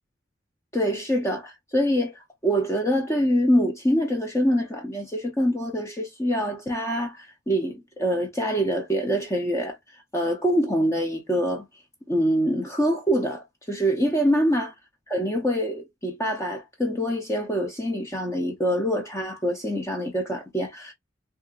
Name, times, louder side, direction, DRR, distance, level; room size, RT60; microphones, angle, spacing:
voice 1, 0.7-11.7 12.1-14.7 15.1-20.9, equal, 15° left, 0.6 m, -25 dB
3.3 x 2.4 x 2.9 m
head